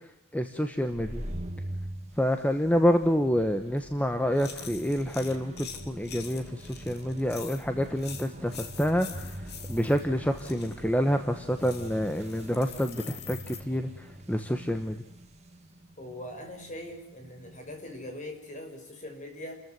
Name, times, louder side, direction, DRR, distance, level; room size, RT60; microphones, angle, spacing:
voice 1, 0.3-1.2 2.2-15.0, equal, 5° left, 7 dB, 1.1 m, -28 dB
sound 1, 0.7-18.1, right 1 dB, 30° right, 2.2 m, -44 dB
sound 2, 3.8-3.9 4.3-10.0 10.3-10.8 11.5-13.6, left 8 dB, 50° left, 2.5 m, -45 dB
voice 2, 16.0-19.6, left 1 dB, 35° left, 3 dB, 6.2 m, -41 dB
29.5 x 14.5 x 9.4 m, 0.75 s
head